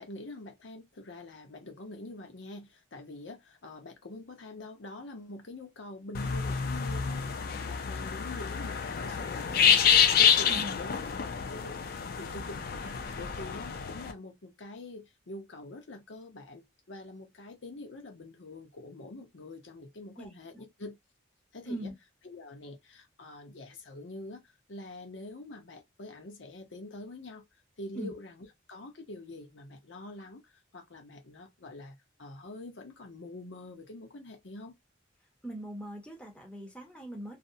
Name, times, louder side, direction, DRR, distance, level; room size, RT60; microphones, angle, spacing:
voice 1, 0.0-7.2 7.5-11.0 11.4-21.0 21.5-21.9 22.2-24.4 24.7-27.4 27.8-34.7, left 2 dB, 75° left, 0.7 m, -45 dB
sound 1, 6.1-14.1, left 7 dB, 50° left, 0.4 m, -27 dB
voice 2, 35.4-37.4, right 1 dB, 5° left, 0.6 m, -40 dB
2.5 x 2.1 x 2.6 m
head